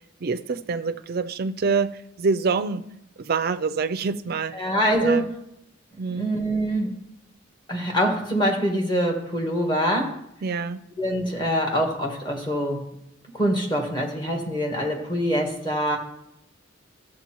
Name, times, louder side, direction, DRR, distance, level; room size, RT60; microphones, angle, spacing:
voice 1, 0.2-2.8 3.3-4.7 5.0-5.3 6.0-6.3 10.4-10.8, right 4 dB, 50° right, 11 dB, 0.4 m, -26 dB
voice 2, 4.5-5.3 6.0-6.9 7.7-10.1 11.0-12.8 13.3-16.0, equal, 20° left, 0 dB, 1.6 m, -24 dB
14.0 x 7.6 x 3.0 m, 0.80 s
head